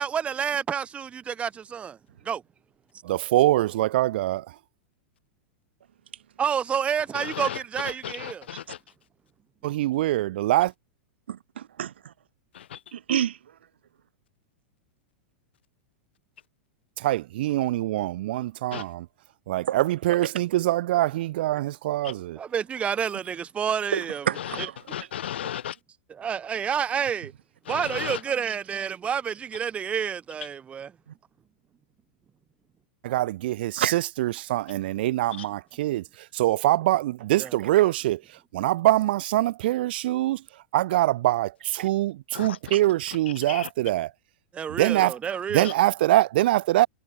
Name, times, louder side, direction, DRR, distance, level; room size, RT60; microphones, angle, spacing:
voice 1, 0.0-2.0 2.2-2.4 6.4-8.4 22.4-24.3 24.6-24.7 26.2-27.3 27.7-30.9 37.4-37.5 44.5-45.7, right 7 dB, 20° right, 4.6 m, -29 dB
voice 2, 3.1-4.4 9.6-10.7 17.0-19.0 19.5-22.4 33.0-36.0 36.3-38.2 38.5-40.4 40.7-44.1 44.8-45.1 45.5-46.9, right 15 dB, 65° right, 1.1 m, -24 dB
voice 3, 7.1-8.8 12.5-12.8 18.7-18.9 22.0-22.1 24.3-25.8 27.6-28.2 35.4-35.5 42.3-42.8 43.5-43.7 45.6-45.7, left 10 dB, 85° left, 6.0 m, -35 dB
voice 4, 11.3-11.9 12.9-13.4 19.7-19.8 23.9-24.7 28.5-28.6 33.8-34.0 41.8-41.9 42.7-42.8, right 10 dB, 85° right, 3.7 m, -28 dB
hypercardioid pair, 130°, 6 cm